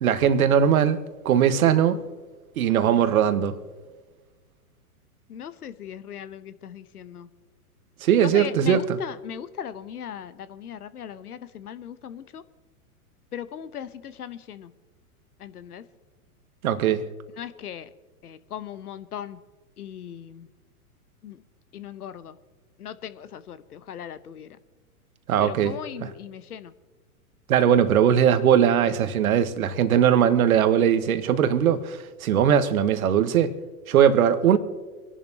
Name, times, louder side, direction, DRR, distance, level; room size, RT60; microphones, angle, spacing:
voice 1, 0.0-2.0 2.6-3.6 8.0-9.0 16.6-17.0 25.3-26.1 27.5-33.5 33.9-34.6, right 9 dB, 70° right, 1.3 m, -20 dB
voice 2, 5.3-7.3 8.2-12.4 13.3-14.7 15.4-15.8 17.4-17.9 18.2-19.4 19.8-20.5 21.2-21.4 21.7-22.4 22.8-24.5 25.4-26.7, left 9 dB, 80° left, 0.9 m, -38 dB
25.5 x 11.0 x 2.8 m
hypercardioid pair, 110°, 45 cm